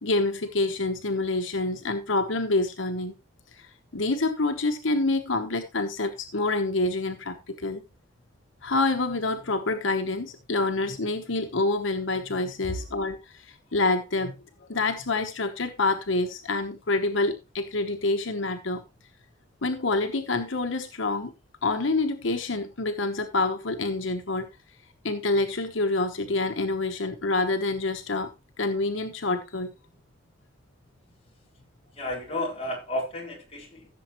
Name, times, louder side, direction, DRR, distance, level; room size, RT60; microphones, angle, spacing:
voice 1, 0.0-3.1 3.5-7.8 8.6-14.4 14.7-18.8 19.6-21.3 21.6-24.5 25.0-28.3 28.6-29.7, left 2 dB, 85° left, 1.2 m, -27 dB
voice 2, 32.0-33.9, left 1 dB, 30° left, 3.9 m, -32 dB
15.5 x 7.1 x 3.1 m
head